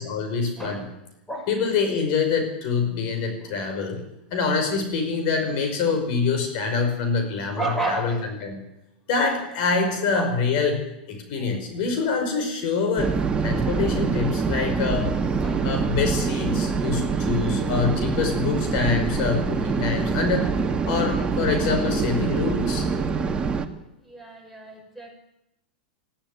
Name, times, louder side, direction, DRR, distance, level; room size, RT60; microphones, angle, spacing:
voice 1, 0.0-0.8 1.5-4.0 4.3-8.1 8.4-8.6 9.1-13.2 13.4-15.1 15.6-20.5 20.9-22.9, left 4 dB, 55° left, 5 dB, 5.6 m, -25 dB
voice 2, 0.6-1.0 1.3-1.5 3.3-3.6 5.8-6.0 7.5-8.4 9.8-10.3 11.3-11.8 15.4-15.8 21.1-21.3 24.0-25.1, right 2 dB, 5° left, 2 dB, 6.5 m, -33 dB
sound 1, 13.0-23.7, right 5 dB, 20° right, 1.8 m, -25 dB
18.5 x 16.0 x 9.3 m, 0.88 s
hypercardioid pair, 110°, 5 cm